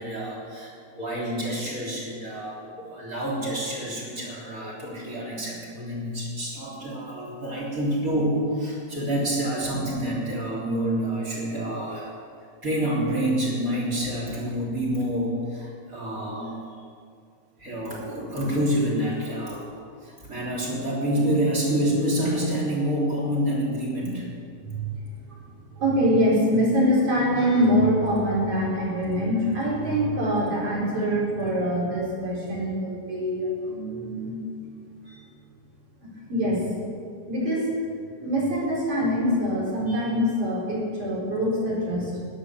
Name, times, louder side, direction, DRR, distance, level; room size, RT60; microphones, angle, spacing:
voice 1, 0.0-12.2 12.6-16.6 17.6-24.3, right 1 dB, 25° right, -3 dB, 3.6 m, -28 dB
voice 2, 24.6-25.0 25.3-25.4 25.7-34.3 35.1-35.2 36.3-36.6 37.3-37.7 38.2-42.2, equal, 50° right, -6 dB, 5.3 m, -24 dB
12.5 x 10.5 x 7.3 m, 2.3 s
omnidirectional pair, 3.4 m